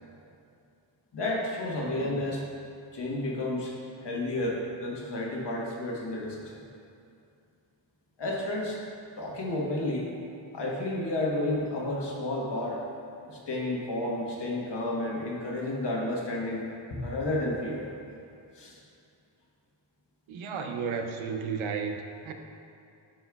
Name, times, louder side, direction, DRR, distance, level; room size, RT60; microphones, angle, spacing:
voice 1, 1.1-2.4 2.9-6.5 8.2-8.8 9.2-10.1 10.5-12.8 13.2-17.9 18.5-18.8, left 1 dB, 60° left, -2 dB, 1.3 m, -31 dB
voice 2, 20.3-22.3, right 5 dB, 85° right, 5 dB, 0.7 m, -33 dB
11.5 x 4.4 x 2.3 m, 2.5 s
cardioid pair, 65°, 47 cm